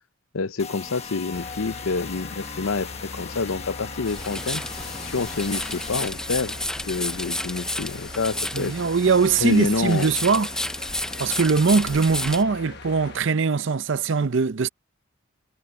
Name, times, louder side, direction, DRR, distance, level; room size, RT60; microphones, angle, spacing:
voice 1, 0.3-4.6 5.0-6.6 6.9-8.8 9.4-10.1, left 4 dB, 70° left, 0.7 m, -28 dB
sound 1, 0.6-6.1, left 5 dB, 30° left, 1.3 m, -38 dB
sound 2, 1.3-13.2, left 3 dB, 50° left, 1.2 m, -41 dB
sound 3, 4.1-12.4, left 1 dB, 5° left, 0.5 m, -32 dB
voice 2, 8.5-10.5 11.2-14.7, right 4 dB, 55° right, 0.6 m, -21 dB
head